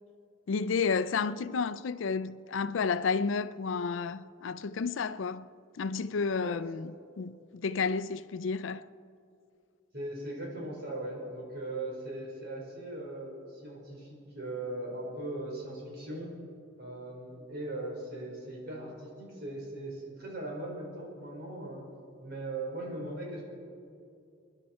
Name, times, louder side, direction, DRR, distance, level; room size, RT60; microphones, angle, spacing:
voice 1, 0.5-5.5 5.8-6.9 7.2-8.8, left 5 dB, 70° left, 0.4 m, -31 dB
voice 2, 9.9-16.3 16.8-21.8 22.2-23.5, right 2 dB, 55° right, 4.2 m, -39 dB
25.5 x 11.0 x 4.4 m
head